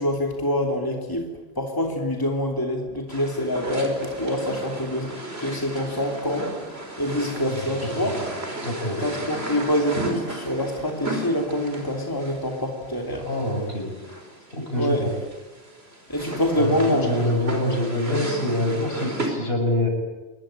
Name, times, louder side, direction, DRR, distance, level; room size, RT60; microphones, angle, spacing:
voice 1, 0.0-6.5 7.0-8.1 9.0-13.3 14.8-15.1 16.1-17.4, left 1 dB, 20° left, 2 dB, 3.0 m, -26 dB
sound 1, 3.1-19.3, right 1 dB, 75° right, 5.2 m, -35 dB
voice 2, 7.3-7.7 8.0-8.1 8.6-9.0 13.3-13.9 14.5-15.1 16.6-19.9, left 1 dB, 65° left, 2 dB, 7.2 m, -25 dB
27.0 x 22.5 x 8.9 m, 1.2 s
omnidirectional pair, 1.1 m